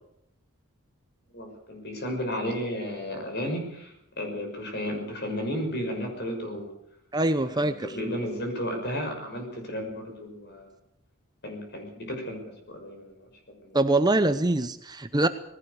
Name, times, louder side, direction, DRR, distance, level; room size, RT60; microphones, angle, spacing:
voice 1, 1.3-6.7 7.4-10.7 11.4-13.8, equal, 50° left, 4 dB, 6.1 m, -33 dB
voice 2, 7.1-7.9 13.7-15.3, right 2 dB, 20° right, 10 dB, 0.8 m, -23 dB
19.5 x 16.5 x 8.2 m, 0.78 s
head